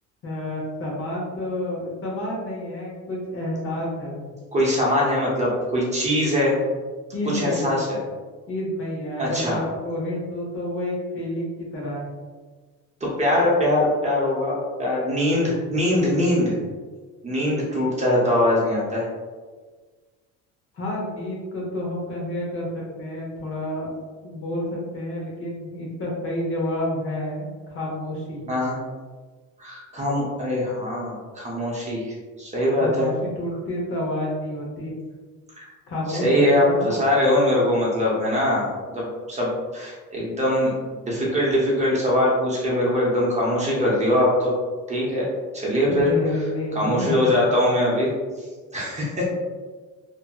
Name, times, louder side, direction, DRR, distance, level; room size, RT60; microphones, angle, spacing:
voice 1, 0.2-4.3 7.1-7.7 8.5-12.1 20.7-23.9 24.2-28.5 32.8-34.9 35.9-37.0 45.9-47.4, left 1 dB, 45° left, -3 dB, 0.8 m, -29 dB
voice 2, 4.5-6.6 7.3-8.0 9.2-9.6 13.0-16.5 17.2-19.1 28.5-28.8 29.6-33.1 35.6-35.7 36.1-44.6 44.9-45.3 45.5-46.1 46.7-48.1 48.4-48.5 48.7-49.2, left 1 dB, 25° right, -5 dB, 0.7 m, -22 dB
2.7 x 2.6 x 2.2 m, 1.4 s
cardioid pair, 145°, 30 cm